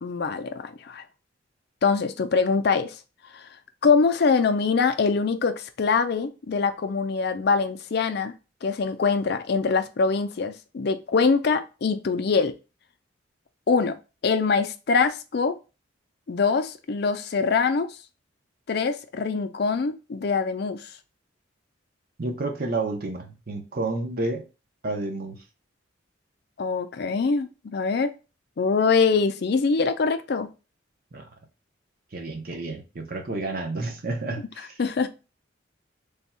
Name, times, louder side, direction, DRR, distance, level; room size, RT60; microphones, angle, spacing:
voice 1, 0.0-1.0 1.8-3.0 3.3-3.5 3.8-8.3 8.6-12.5 13.7-14.0 14.2-15.6 16.3-18.0 18.7-20.9 26.6-28.1 28.6-30.5 34.8-35.1, left 5 dB, 55° left, 0.4 m, -23 dB
voice 2, 22.2-24.4 24.8-25.4 31.1-31.3 32.1-34.8, right 2 dB, 50° right, 0.7 m, -30 dB
3.5 x 2.2 x 4.1 m
head